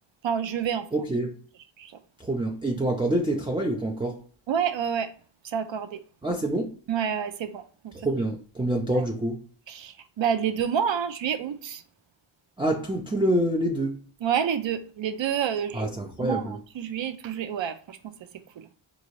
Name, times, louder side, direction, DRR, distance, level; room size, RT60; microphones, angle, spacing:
voice 1, 0.2-0.9 1.8-2.0 4.5-5.1 5.4-6.0 6.9-7.9 8.9-9.0 9.7-11.8 14.2-15.9 16.2-18.1 18.6-18.7, right 8 dB, 65° right, 0.5 m, -28 dB
voice 2, 0.9-1.3 2.2-4.2 6.2-6.7 7.9-9.4 12.6-14.0 15.7-16.6, right 1 dB, 10° right, 0.4 m, -26 dB
3.7 x 2.6 x 3.0 m
cardioid pair, 60°, 49 cm